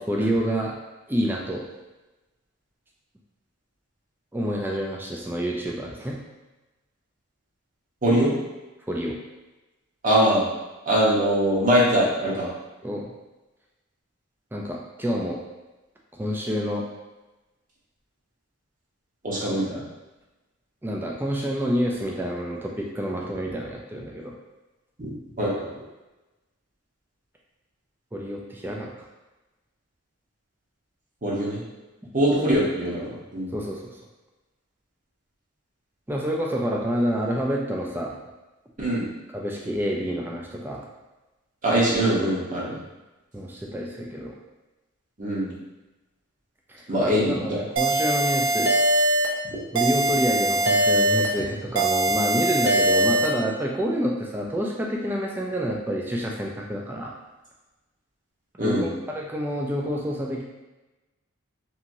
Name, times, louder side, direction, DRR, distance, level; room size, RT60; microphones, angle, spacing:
voice 1, 0.1-0.7 1.1-1.6 4.3-6.2 8.9-9.2 12.8-13.1 14.5-15.4 16.2-16.9 20.8-24.3 28.1-28.9 33.5-33.8 36.1-38.2 39.3-40.8 43.3-44.4 46.7-48.7 49.7-57.1 58.6-60.4, equal, 10° right, -1 dB, 0.3 m, -28 dB
voice 2, 8.0-8.3 10.0-10.4 10.8-12.5 19.2-19.8 25.0-25.1 25.4-25.6 31.2-31.6 32.1-33.5 38.8-39.1 41.6-42.8 45.2-45.5 46.9-47.6 58.6-58.9, equal, 40° right, -6 dB, 0.9 m, -22 dB
sound 1, 47.8-49.3 49.8-51.3 51.8-53.3, right 1 dB, 75° right, 0.4 m, -21 dB
2.9 x 2.7 x 2.6 m, 1.1 s
head